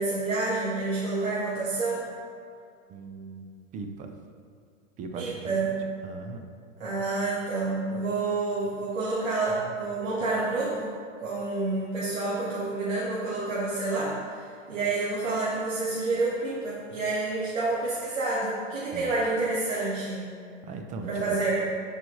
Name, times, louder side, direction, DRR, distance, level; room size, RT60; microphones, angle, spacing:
voice 1, 0.0-2.0 5.1-5.8 6.8-10.9 11.2-20.2 21.0-21.6, right 3 dB, 85° right, -7 dB, 1.5 m, -28 dB
voice 2, 2.9-3.5 3.7-4.1 5.0-5.3 6.0-6.4 18.9-19.1 20.6-21.4, right 4 dB, 20° right, 5 dB, 0.5 m, -38 dB
10.5 x 4.8 x 3.2 m, 2.2 s
hypercardioid pair, 125°, 38 cm